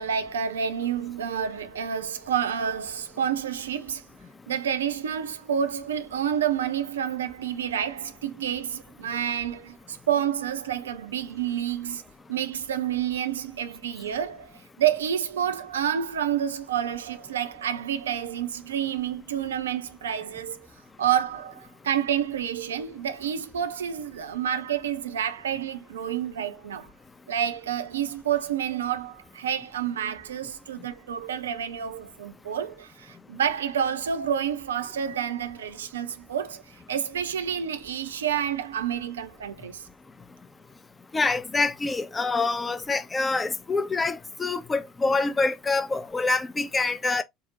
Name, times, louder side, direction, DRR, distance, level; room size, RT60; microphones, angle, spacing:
voice 1, 0.0-4.1 4.5-12.0 12.3-20.7 21.0-26.9 27.3-39.9, right 9 dB, 75° right, 0.3 m, -29 dB
voice 2, 41.1-47.2, left 3 dB, 20° left, 0.4 m, -26 dB
3.6 x 2.0 x 2.8 m
figure-of-eight pair, 65°, 0 cm